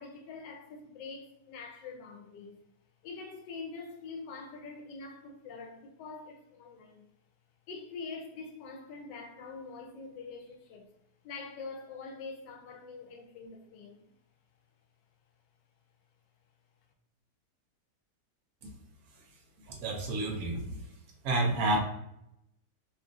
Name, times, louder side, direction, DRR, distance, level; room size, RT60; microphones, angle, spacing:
voice 1, 0.0-2.6 3.0-7.0 7.7-10.9 11.2-14.1, left 4 dB, 85° left, 1.3 m, -44 dB
voice 2, 19.7-20.8 21.2-21.8, right 2 dB, 65° right, 1.0 m, -30 dB
3.0 x 2.4 x 2.5 m
omnidirectional pair, 1.9 m